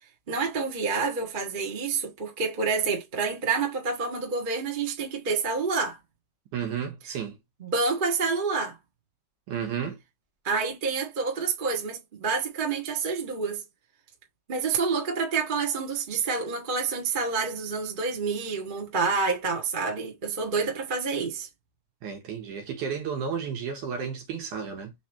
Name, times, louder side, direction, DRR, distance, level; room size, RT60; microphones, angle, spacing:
voice 1, 0.3-6.0 7.6-8.8 10.4-13.6 14.5-21.5, right 4 dB, 50° right, 0.6 m, -28 dB
voice 2, 6.5-7.4 9.5-10.0 22.0-24.9, right 7 dB, 70° right, 2.6 m, -32 dB
5.4 x 3.2 x 2.8 m
omnidirectional pair, 3.8 m